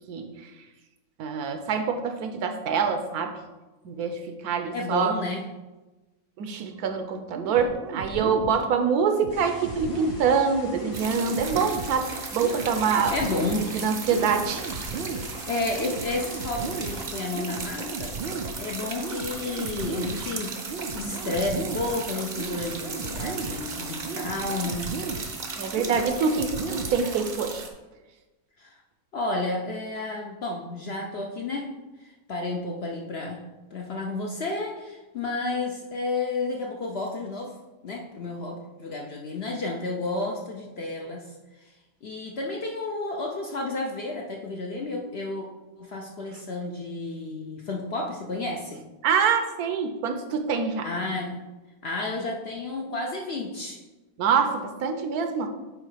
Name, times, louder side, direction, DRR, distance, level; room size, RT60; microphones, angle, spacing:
voice 1, 1.2-3.4 3.8-5.1 6.4-13.1 13.5-14.6 25.6-27.6 49.0-50.9 54.2-55.5, right 6 dB, 75° right, 6 dB, 1.2 m, -25 dB
voice 2, 4.7-5.4 13.1-13.7 15.5-18.2 18.6-25.0 28.6-28.8 29.1-31.7 32.3-33.4 33.7-37.5 37.8-41.3 42.0-45.5 45.8-48.8 50.8-51.4 51.8-53.8, left 2 dB, 55° left, 0 dB, 0.7 m, -31 dB
sound 1, 7.3-27.3, right 4 dB, 90° right, 0.5 m, -36 dB
sound 2, 9.3-17.0, equal, 75° left, 2.2 m, -44 dB
sound 3, 10.9-27.7, right 4 dB, 40° right, 0.7 m, -36 dB
8.4 x 3.2 x 5.0 m, 1.1 s
omnidirectional pair, 1.7 m